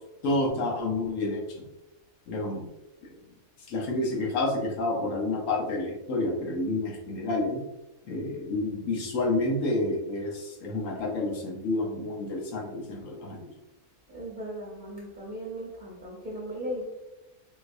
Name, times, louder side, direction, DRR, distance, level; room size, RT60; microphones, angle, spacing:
voice 1, 0.2-1.6 2.3-2.7 3.0-3.1 3.7-7.6 8.0-13.5, left 2 dB, 65° left, 0 dB, 1.1 m, -29 dB
voice 2, 14.1-16.8, equal, 40° right, -5 dB, 0.8 m, -37 dB
3.9 x 2.7 x 2.5 m, 0.96 s
omnidirectional pair, 1.5 m